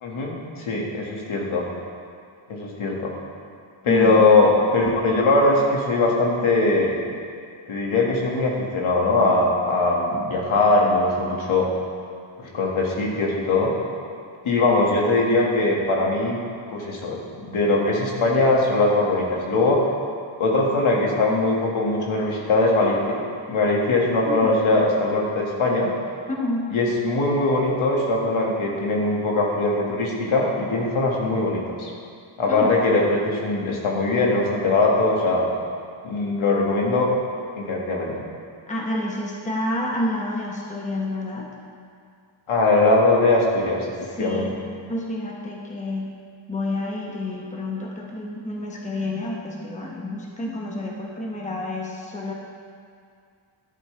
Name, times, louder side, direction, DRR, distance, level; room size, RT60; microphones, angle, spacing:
voice 1, 0.0-1.6 2.5-3.1 3.8-7.0 7.7-11.7 12.5-13.7 14.4-16.4 16.7-19.8 20.4-23.2 23.5-25.9 26.7-31.9 32.4-35.5 36.0-37.1 37.6-38.1 42.5-44.5, left 2 dB, 75° left, -2 dB, 2.2 m, -21 dB
voice 2, 3.9-4.2 24.3-24.5 26.3-26.7 32.5-32.7 38.7-41.5 44.0-44.6 44.9-46.1 46.5-52.3, left 1 dB, 15° left, -2 dB, 1.1 m, -29 dB
12.5 x 11.5 x 3.4 m, 2.2 s
wide cardioid pair, 165°, 50 cm